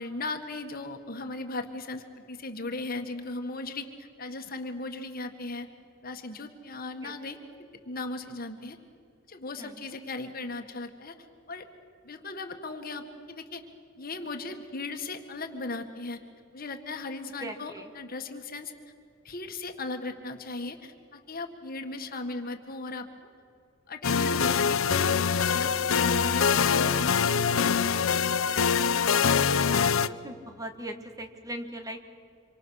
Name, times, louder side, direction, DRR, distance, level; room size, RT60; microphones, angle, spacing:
voice 1, 0.0-5.7 6.0-7.4 7.9-8.8 9.3-11.2 11.5-11.7 12.0-13.7 14.0-16.2 16.5-18.7 19.3-23.1 23.9-24.8 25.5-27.2 27.4-28.1 28.4-28.7, left 3 dB, 45° left, 6 dB, 1.7 m, -37 dB
voice 2, 9.6-10.0 17.4-17.9 29.8-32.1, right 1 dB, 15° right, 6 dB, 1.4 m, -40 dB
sound 1, 24.0-30.1, left 6 dB, 75° left, 0.7 m, -24 dB
27.0 x 24.5 x 6.5 m, 2.5 s
head